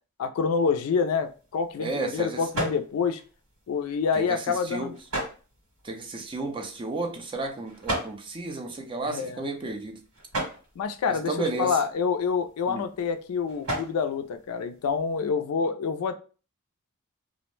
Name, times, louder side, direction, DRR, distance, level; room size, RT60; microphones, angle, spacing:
voice 1, 0.2-3.2 3.7-4.9 9.0-9.5 10.8-16.2, left 5 dB, 75° left, 0.3 m, -27 dB
sound 1, 0.9-15.3, right 1 dB, 80° right, 1.5 m, -39 dB
voice 2, 1.8-2.4 4.2-5.0 5.8-10.0 11.1-11.8 12.7-12.8, right 2 dB, 25° right, 0.4 m, -32 dB
2.5 x 2.0 x 3.0 m
head